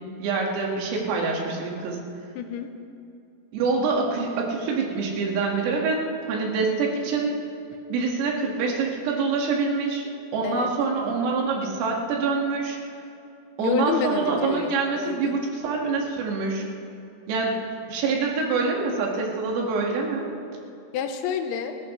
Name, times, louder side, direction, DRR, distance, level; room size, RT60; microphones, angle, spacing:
voice 1, 0.2-2.0 3.5-7.4 7.9-12.8 13.6-16.6 17.3-17.6 17.9-20.3, right 4 dB, 85° right, -1 dB, 4.6 m, -25 dB
voice 2, 2.4-2.7 10.4-10.7 13.6-15.4 20.9-21.8, left 7 dB, 75° left, 6 dB, 2.9 m, -29 dB
27.5 x 14.5 x 3.2 m, 2.6 s
omnidirectional pair, 5.9 m